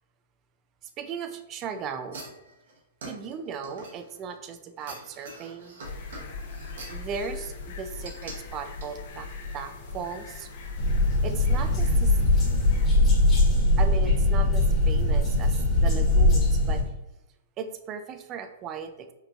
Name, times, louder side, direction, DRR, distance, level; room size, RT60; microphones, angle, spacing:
voice 1, 1.0-2.2 3.0-5.8 6.9-9.3 9.5-10.5 11.2-12.2 13.8-16.8 17.6-19.1, right 6 dB, 30° right, 8 dB, 0.3 m, -37 dB
sound 1, 2.1-4.4 4.8-7.1 8.0-8.4 8.8-8.9, right 2 dB, 70° right, 0.9 m, -44 dB
sound 2, 5.8-12.9, left 4 dB, 60° left, 0.6 m, -39 dB
sound 3, 10.8-16.8, left 1 dB, 20° left, 1.1 m, -21 dB
4.5 x 2.3 x 2.5 m, 0.93 s
hypercardioid pair, 130°, 0 cm